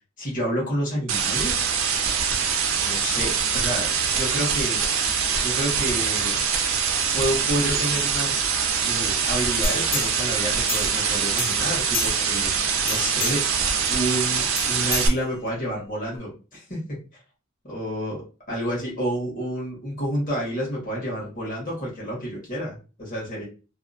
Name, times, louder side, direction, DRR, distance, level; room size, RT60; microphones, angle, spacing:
voice 1, 0.2-1.7 2.8-4.8 5.4-6.4 7.1-8.5 8.8-12.5 12.8-17.0 17.7-18.2 18.5-23.5, equal, 40° left, -5 dB, 1.3 m, -29 dB
sound 1, 1.1-15.1, right 6 dB, 75° right, 0.5 m, -24 dB
sound 2, 9.6-11.1 11.4-12.4 12.8-13.6 14.6-15.7 16.1-16.2, left 4 dB, 65° left, 1.0 m, -31 dB
2.7 x 2.1 x 2.5 m, 0.34 s
head